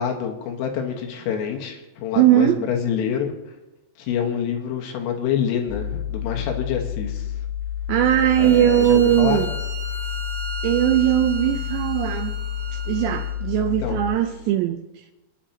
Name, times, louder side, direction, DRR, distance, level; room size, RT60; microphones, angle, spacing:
voice 1, 0.0-3.3 4.0-7.3 8.4-9.4 13.8-14.0, left 8 dB, 90° left, 4.0 m, -26 dB
voice 2, 2.2-2.6 7.9-9.5 10.6-12.3 12.9-14.9, right 12 dB, 85° right, 2.6 m, -19 dB
sound 1, 5.7-14.2, left 10 dB, 70° left, 6.5 m, -30 dB
Bowed string instrument, 8.0-13.4, right 2 dB, 50° right, 3.2 m, -35 dB
27.0 x 10.0 x 2.9 m
omnidirectional pair, 5.7 m